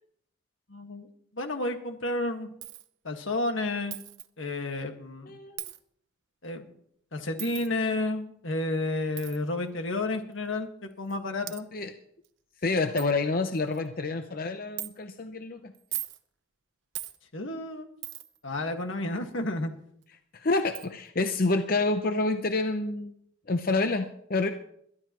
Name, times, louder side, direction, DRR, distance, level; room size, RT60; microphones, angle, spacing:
voice 1, 0.7-1.1 1.3-2.5 3.0-4.0 4.4-5.4 6.4-6.7 7.1-11.7 17.3-17.9 18.4-19.7, left 2 dB, 80° left, 5 dB, 1.7 m, -31 dB
Coin (dropping), 2.6-2.9 3.9-4.3 5.6-5.8 7.4-7.7 9.2-9.4 10.3-10.4 11.1-11.2 11.5-11.6 12.2-12.3 12.6-12.7 13.0-13.1 13.5-13.9 14.8-14.9 15.7-16.2 16.9-17.2 18.0-18.4 20.0-20.1 20.7-20.9, right 16 dB, 70° right, 0.8 m, -38 dB
voice 2, 5.3-5.6 11.4-11.9 12.6-15.7 20.3-23.1 23.5-24.5, left 3 dB, 45° left, 7 dB, 0.7 m, -28 dB
22.0 x 12.0 x 3.0 m, 0.69 s
head